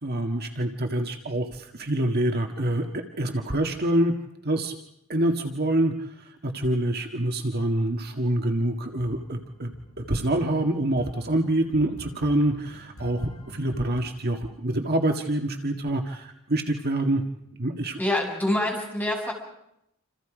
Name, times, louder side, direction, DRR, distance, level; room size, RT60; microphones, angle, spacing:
voice 1, 0.0-4.1 4.4-4.8 5.1-17.2 17.6-18.0, right 1 dB, 50° right, 4 dB, 1.8 m, -26 dB
sound 1, 8.7-14.0, equal, 85° left, 5.7 m, -46 dB
voice 2, 18.0-19.3, left 1 dB, 10° left, -1 dB, 7.0 m, -26 dB
28.0 x 28.0 x 5.1 m, 0.81 s
head